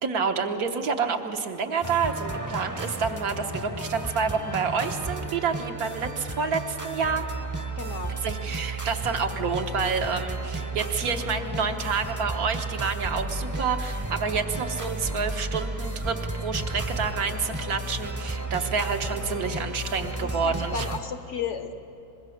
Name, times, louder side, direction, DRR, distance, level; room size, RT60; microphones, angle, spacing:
voice 1, 0.0-7.3 8.2-20.9, right 5 dB, 70° right, 5 dB, 1.6 m, -28 dB
sound 1, 1.8-21.0, right 2 dB, 15° right, 0.8 m, -33 dB
voice 2, 7.8-8.1 20.2-21.7, left 6 dB, 55° left, 8 dB, 1.1 m, -33 dB
24.0 x 21.0 x 6.5 m, 2.9 s
omnidirectional pair, 1.6 m